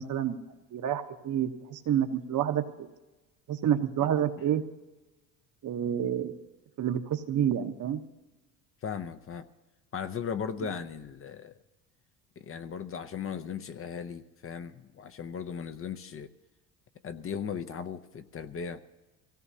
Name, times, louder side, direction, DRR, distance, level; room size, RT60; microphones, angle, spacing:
voice 1, 0.0-2.9 3.5-4.6 5.6-6.4 6.8-8.0, right 9 dB, 50° right, 1.1 m, -29 dB
voice 2, 8.8-9.5 9.9-11.5 12.4-16.3 17.0-18.8, left 7 dB, 35° left, 0.7 m, -37 dB
22.5 x 16.5 x 2.8 m
cardioid pair, 100°, 39 cm